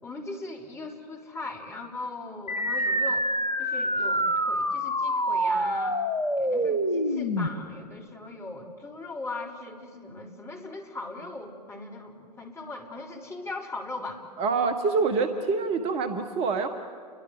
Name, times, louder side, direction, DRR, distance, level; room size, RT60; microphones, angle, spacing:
voice 1, 0.0-3.3 3.6-6.0 6.4-14.2, left 2 dB, 15° left, 1 dB, 3.8 m, -39 dB
sound 1, 2.5-7.5, equal, 90° left, 1.4 m, -26 dB
voice 2, 14.4-16.7, right 4 dB, 30° right, 8 dB, 1.5 m, -26 dB
29.5 x 23.5 x 8.1 m, 2.2 s
figure-of-eight pair, 100°, 21 cm